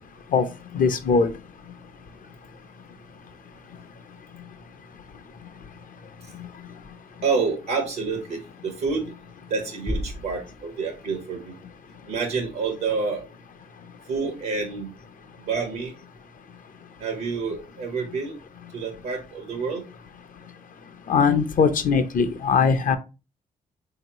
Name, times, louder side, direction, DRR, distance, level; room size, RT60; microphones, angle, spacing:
voice 1, 0.7-1.3 21.1-23.0, left 5 dB, 60° left, 10 dB, 0.6 m, -20 dB
voice 2, 7.2-9.1 9.5-11.5 12.1-13.2 14.1-14.9 15.4-15.9 17.0-18.4 18.7-19.8, right 4 dB, 90° right, 2 dB, 0.8 m, -28 dB
Bass drum, 9.9-11.5, equal, ahead, 0.3 m, -34 dB
3.7 x 2.8 x 2.8 m, 0.29 s
supercardioid pair, 60°, 16 cm